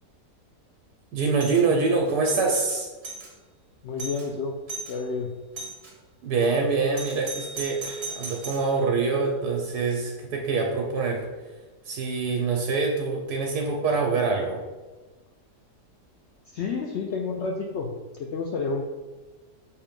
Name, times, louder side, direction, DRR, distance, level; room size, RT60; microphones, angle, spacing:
voice 1, 1.1-2.9 6.2-11.3 11.8-14.6, right 4 dB, 75° right, 0 dB, 1.3 m, -25 dB
Doorbell, 1.3-1.6 2.1-3.3 3.7-3.8 4.0-4.3 4.7-5.0 5.6-5.9 6.9-8.7, right 3 dB, 45° right, 1.2 m, -37 dB
voice 2, 3.8-4.6 4.9-5.3 16.5-18.8, left 4 dB, 75° left, 1 dB, 0.6 m, -30 dB
6.8 x 2.8 x 5.1 m, 1.2 s
omnidirectional pair, 1.8 m